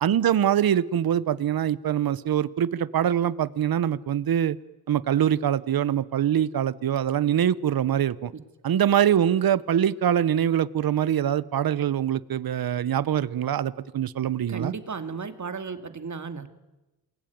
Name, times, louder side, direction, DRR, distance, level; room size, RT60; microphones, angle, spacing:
voice 1, 0.0-4.6 4.9-8.3 8.6-14.7, right 10 dB, 70° right, 1.0 m, -24 dB
voice 2, 14.5-16.5, right 5 dB, 50° right, 2.4 m, -34 dB
28.0 x 21.5 x 9.4 m
cardioid pair, 70°, 37 cm